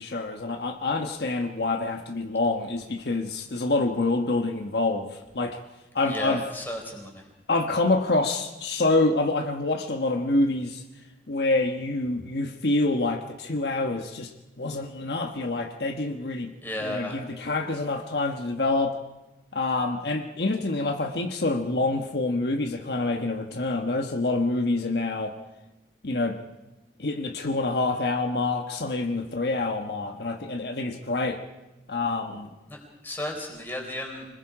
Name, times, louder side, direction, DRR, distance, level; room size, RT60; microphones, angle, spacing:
voice 1, 0.0-5.6 5.9-6.4 7.5-10.8 11.3-14.3 14.6-16.5 16.8-19.0 19.5-25.4 26.0-26.4 27.0-31.4 31.9-32.5, left 2 dB, 70° left, 4 dB, 1.3 m, -26 dB
voice 2, 6.0-7.2 16.6-17.2 32.7-32.8 33.0-34.3, left 1 dB, 10° left, 1 dB, 4.1 m, -33 dB
26.0 x 20.5 x 4.9 m, 1.0 s
head